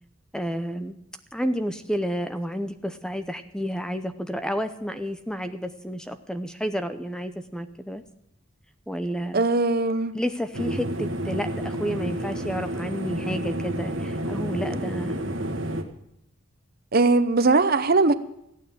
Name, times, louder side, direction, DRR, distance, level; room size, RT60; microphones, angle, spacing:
voice 1, 0.3-1.0 1.3-8.0 8.9-9.4 10.1-15.2, equal, 5° left, 0.6 m, -30 dB
voice 2, 9.3-10.1 16.9-18.1, right 3 dB, 45° right, 0.7 m, -20 dB
sound 1, 10.5-15.8, right 1 dB, 65° right, 1.6 m, -30 dB
15.0 x 9.3 x 7.6 m
head